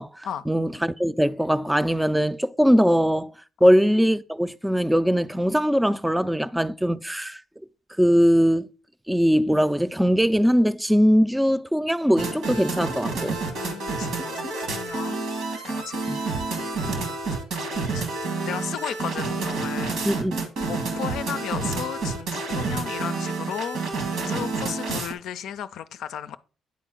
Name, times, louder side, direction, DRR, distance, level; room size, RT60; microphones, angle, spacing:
voice 1, 0.0-3.3 3.6-7.4 8.0-8.7 9.1-13.4 16.1-16.2 20.1-20.4, equal, 5° right, 0.4 m, -21 dB
sound 1, 12.2-25.1, right 3 dB, 75° right, 1.7 m, -29 dB
voice 2, 13.3-15.3 15.6-16.4 16.8-16.9 17.5-20.0 20.7-23.8 24.3-26.4, left 9 dB, 70° left, 0.4 m, -35 dB
9.4 x 4.1 x 3.8 m
supercardioid pair, 55°, 0 cm